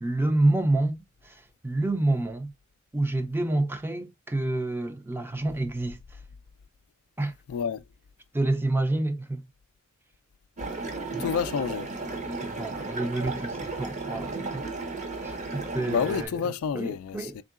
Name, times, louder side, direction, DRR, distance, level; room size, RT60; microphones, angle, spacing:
voice 1, 0.0-2.5 2.9-6.2 7.2-7.3 8.3-9.4 11.1-11.3 12.4-14.6 15.2-16.3 16.7-17.4, right 2 dB, 10° right, 0.4 m, -28 dB
voice 2, 7.5-7.8 11.2-11.9 15.9-17.4, left 7 dB, 70° left, 0.3 m, -29 dB
sound 1, 10.6-16.3, right 3 dB, 35° right, 0.8 m, -34 dB
3.6 x 3.6 x 2.3 m
head